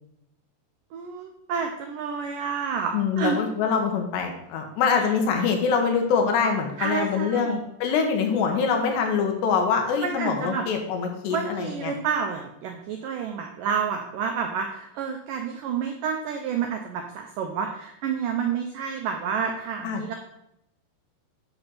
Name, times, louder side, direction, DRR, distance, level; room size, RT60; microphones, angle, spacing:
voice 1, 0.9-3.4 5.0-5.1 6.8-7.5 10.0-10.6 11.3-20.1, right 6 dB, 85° right, 4 dB, 1.9 m, -29 dB
voice 2, 2.9-11.9 19.8-20.2, left 6 dB, 85° left, 3 dB, 3.4 m, -24 dB
10.5 x 6.2 x 4.1 m, 0.79 s
omnidirectional pair, 4.8 m